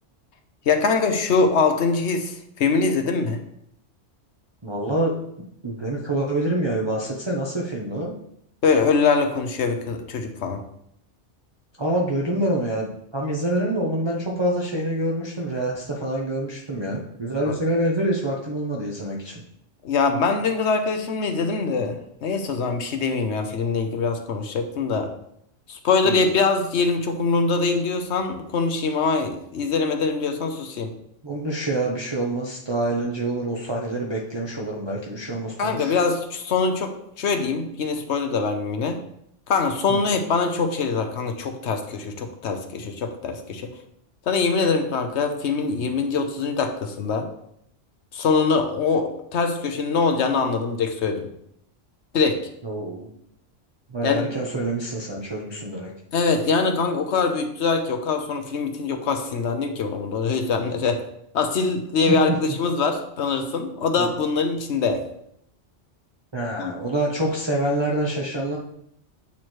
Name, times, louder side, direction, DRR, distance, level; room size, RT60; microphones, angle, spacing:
voice 1, 0.7-3.4 8.6-10.6 17.5-17.6 19.8-25.1 25.7-30.9 35.6-39.0 39.5-43.7 44.3-47.3 48.1-51.3 52.1-52.4 54.0-54.3 56.1-61.0 61.3-65.0 66.6-66.7, left 4 dB, 70° left, 6 dB, 1.0 m, -23 dB
voice 2, 4.6-5.1 5.6-8.1 11.8-19.4 26.0-26.2 31.2-36.0 39.9-40.0 52.6-53.1 53.9-55.9 62.1-62.2 64.0-64.1 66.3-68.6, right 1 dB, 25° right, -4 dB, 0.7 m, -26 dB
8.6 x 3.1 x 4.4 m, 0.73 s
omnidirectional pair, 1.2 m